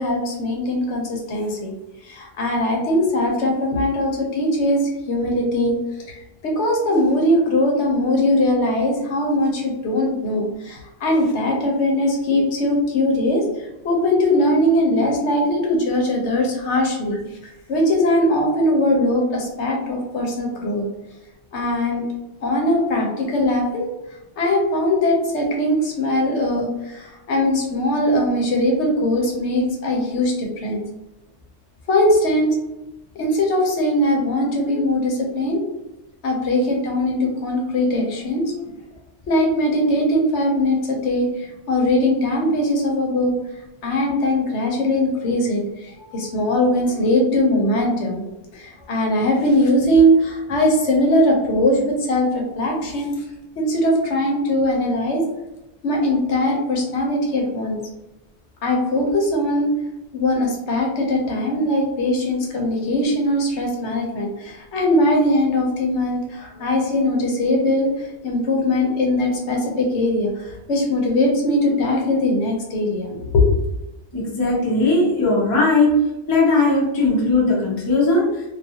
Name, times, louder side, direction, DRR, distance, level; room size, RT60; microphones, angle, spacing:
voice 1, 0.0-1.7 2.0-5.7 6.1-20.9 21.5-22.0 22.4-23.9 24.4-30.8 31.9-32.6 33.1-35.6 36.2-38.5 39.3-43.3 43.8-48.3 48.5-53.1 53.6-55.2 55.8-57.8 58.6-59.7 60.1-73.5, left 1 dB, 70° left, 0 dB, 0.9 m, -20 dB
voice 2, 74.1-75.9 76.3-78.4, left 3 dB, 25° left, -3 dB, 0.5 m, -18 dB
2.4 x 2.3 x 2.7 m, 0.97 s
omnidirectional pair, 1.2 m